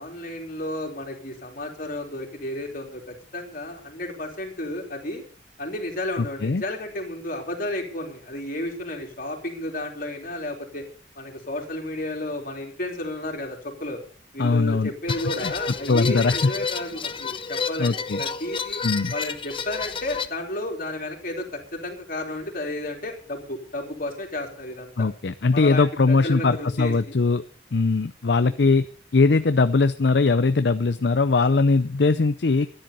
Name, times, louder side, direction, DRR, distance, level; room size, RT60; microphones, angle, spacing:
voice 1, 0.0-5.2 5.6-10.9 11.2-14.0 14.3-18.8 19.1-25.1 25.5-27.1 28.4-28.6, left 1 dB, 50° left, 1 dB, 3.7 m, -32 dB
voice 2, 14.4-14.9 15.4-15.5 15.9-16.5 17.8-18.2 18.8-19.1 25.0-27.4 27.7-28.9 29.1-32.7, left 3 dB, 65° left, 12 dB, 0.6 m, -20 dB
sound 1, 15.1-20.3, left 5 dB, 30° left, 0.8 m, -30 dB
13.0 x 10.5 x 6.8 m, 0.44 s
head